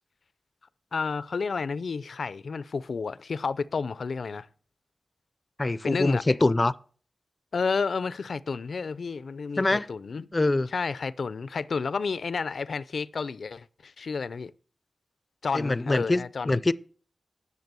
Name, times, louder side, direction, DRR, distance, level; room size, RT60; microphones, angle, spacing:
voice 1, 0.9-4.5 5.8-6.2 7.5-10.3 10.7-14.5 15.4-16.6, left 5 dB, 80° left, 0.5 m, -31 dB
voice 2, 5.6-6.7 9.6-9.9 10.3-10.7 15.5-16.7, left 2 dB, 30° left, 0.5 m, -24 dB
10.5 x 6.8 x 6.9 m
wide cardioid pair, 110°, 0 cm